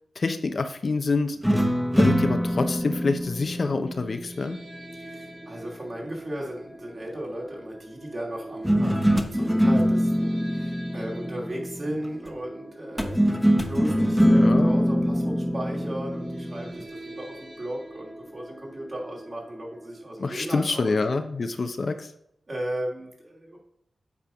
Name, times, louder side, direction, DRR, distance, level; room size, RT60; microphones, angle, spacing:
voice 1, 0.2-1.4 2.0-4.6 14.3-14.7 20.2-22.1, left 3 dB, 60° left, 8 dB, 0.7 m, -26 dB
sound 1, 1.4-4.8 8.6-12.1 13.0-16.8, equal, ahead, 1.2 m, -23 dB
sound 2, 4.0-20.1, right 1 dB, 30° right, 1.6 m, -44 dB
voice 2, 5.0-21.0 22.5-23.6, right 1 dB, 45° right, -2 dB, 2.8 m, -36 dB
8.4 x 3.5 x 5.1 m, 0.75 s
cardioid pair, 40°, 0 cm